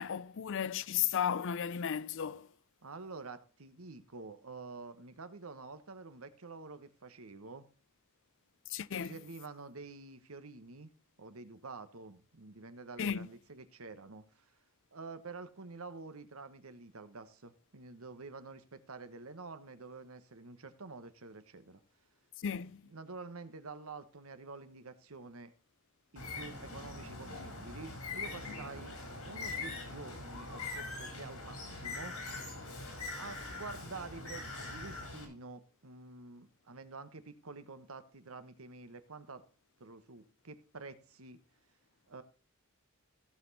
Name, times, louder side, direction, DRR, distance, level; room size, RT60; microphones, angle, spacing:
voice 1, 0.0-2.5 8.7-9.2 13.0-13.3 22.4-22.8, left 8 dB, 60° left, 0.5 m, -34 dB
voice 2, 2.8-7.6 8.9-10.9 11.2-14.4 14.9-21.8 22.9-25.5 26.1-32.1 33.2-39.4 39.8-41.4 42.1-42.2, right 3 dB, 75° right, 1.2 m, -48 dB
Bird, 26.2-35.3, left 3 dB, 90° left, 3.7 m, -42 dB
16.0 x 6.1 x 4.1 m
head